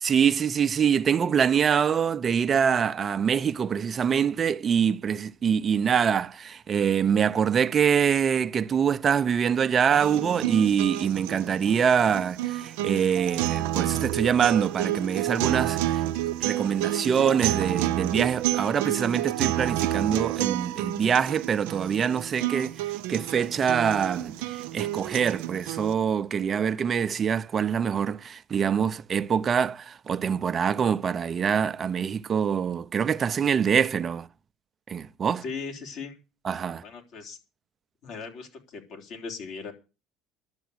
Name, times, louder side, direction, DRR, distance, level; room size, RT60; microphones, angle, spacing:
voice 1, 0.0-16.0 16.4-22.8 23.1-34.3 34.9-35.4 36.4-36.8, right 7 dB, 40° right, 0.7 m, -24 dB
sound 1, 9.9-25.9, right 14 dB, 80° right, 0.6 m, -29 dB
voice 2, 35.4-36.2 36.8-37.4 38.0-39.7, left 5 dB, 65° left, 3.6 m, -38 dB
11.5 x 7.1 x 8.0 m
supercardioid pair, 80°, 0 cm